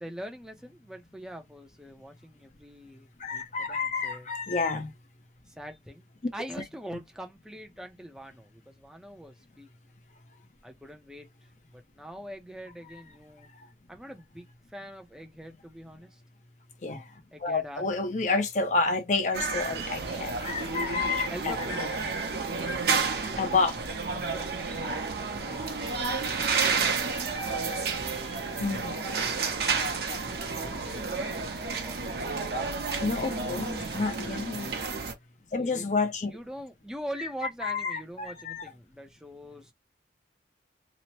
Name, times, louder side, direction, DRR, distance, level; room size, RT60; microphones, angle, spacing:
voice 1, 0.0-4.3 5.5-6.1 6.3-9.7 10.6-11.3 11.7-13.5 13.9-16.2 17.3-17.8 21.3-22.4 24.1-25.0 27.5-28.0 30.6-33.0 33.9-34.3 35.5-35.9 36.3-39.7, equal, 5° right, 0.5 m, -43 dB
voice 2, 3.2-4.9 13.5-13.7 16.8-21.9 23.4-23.8 26.0-26.2 28.6-29.1 33.0-34.7 35.5-36.3 37.2-37.3 37.6-38.7, left 4 dB, 40° left, 0.6 m, -30 dB
sound 1, 19.3-35.1, right 4 dB, 60° right, 0.8 m, -31 dB
2.9 x 2.0 x 2.9 m
head